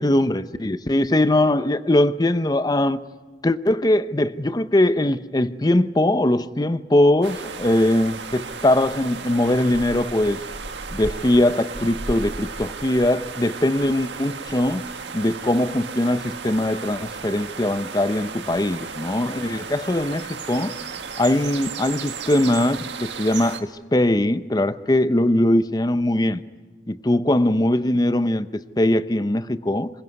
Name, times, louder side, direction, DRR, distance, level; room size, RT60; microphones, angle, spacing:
voice 1, 0.0-3.0 3.4-10.4 10.9-14.9 15.1-20.7 21.2-26.4 26.9-29.9, left 1 dB, 20° left, 13 dB, 0.7 m, -21 dB
sound 1, 7.2-23.6, right 5 dB, 85° right, 1.7 m, -34 dB
26.5 x 16.5 x 9.6 m, 1.3 s
head